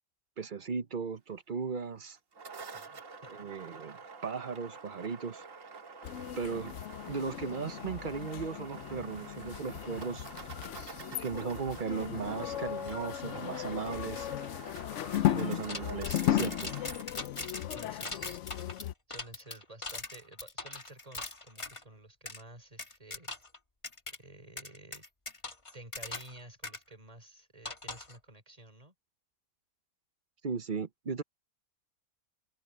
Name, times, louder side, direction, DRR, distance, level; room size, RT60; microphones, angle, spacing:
voice 1, 0.4-2.2 3.3-5.4 6.4-6.7 7.1-10.3 11.1-14.3 15.3-16.7 30.4-31.2, right 5 dB, 40° right, 0.9 m, -37 dB
sound 1, 2.1-17.0, right 4 dB, 60° right, 2.2 m, -48 dB
voice 2, 2.7-3.3 15.2-15.5 17.7-18.4 19.1-23.3 24.2-25.0 25.7-28.9, right 1 dB, 25° right, 3.7 m, -52 dB
sound 2, 6.0-18.9, left 12 dB, 65° left, 0.8 m, -36 dB
sound 3, 15.7-21.8 22.3-22.4 22.8-23.6 23.8-24.2 24.6-26.4 26.6-26.8 27.6-28.2, left 3 dB, 20° left, 1.3 m, -41 dB
open air
omnidirectional pair, 1.5 m